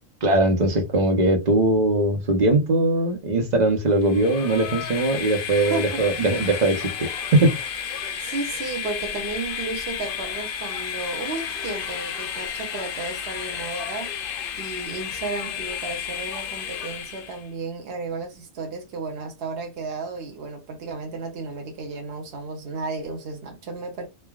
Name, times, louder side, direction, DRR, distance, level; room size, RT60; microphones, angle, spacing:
voice 1, 0.2-7.5, right 2 dB, 45° right, 0.9 m, -20 dB
Train, 4.0-17.5, left 8 dB, 60° left, 0.6 m, -32 dB
voice 2, 5.7-6.0 8.2-14.3 14.6-24.1, right 3 dB, 65° right, 1.0 m, -33 dB
3.3 x 2.2 x 2.3 m
omnidirectional pair, 1.1 m